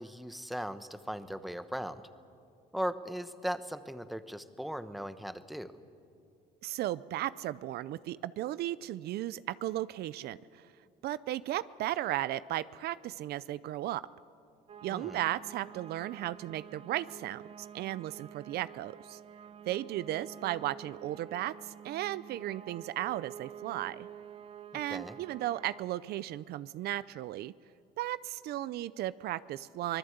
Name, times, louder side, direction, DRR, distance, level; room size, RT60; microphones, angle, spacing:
voice 1, 0.0-2.0 2.7-5.7 14.9-15.2 24.9-25.2, equal, ahead, 11 dB, 1.1 m, -38 dB
voice 2, 6.6-10.7 11.0-14.1 14.8-19.2 19.7-24.1 24.7-27.5 28.0-30.0, right 14 dB, 70° right, 17 dB, 0.5 m, -35 dB
sound 1, 14.7-25.8, right 8 dB, 35° right, 0.7 m, -49 dB
25.0 x 20.0 x 8.0 m, 2.4 s
cardioid pair, 110°, 17 cm